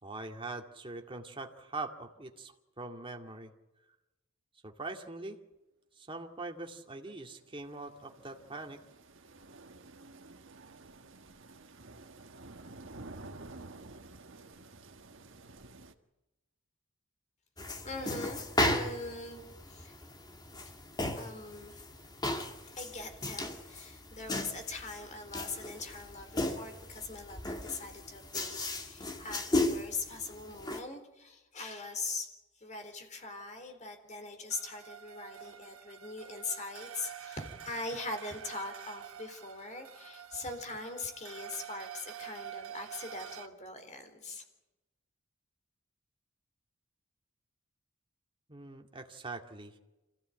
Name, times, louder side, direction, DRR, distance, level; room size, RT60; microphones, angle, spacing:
voice 1, 0.0-3.5 4.6-5.4 6.0-8.8 48.5-49.7, right 3 dB, 25° right, 3 dB, 2.2 m, -42 dB
sound 1, 7.0-15.9, right 2 dB, 65° right, 1.6 m, -51 dB
sound 2, 17.6-30.8, left 1 dB, 20° left, 1.9 m, -36 dB
voice 2, 17.8-20.0 21.1-21.8 22.7-44.4, left 3 dB, 35° left, 7 dB, 3.9 m, -42 dB
sound 3, 34.5-43.5, right 9 dB, 90° right, 1.6 m, -47 dB
26.5 x 16.0 x 9.1 m, 1.0 s
head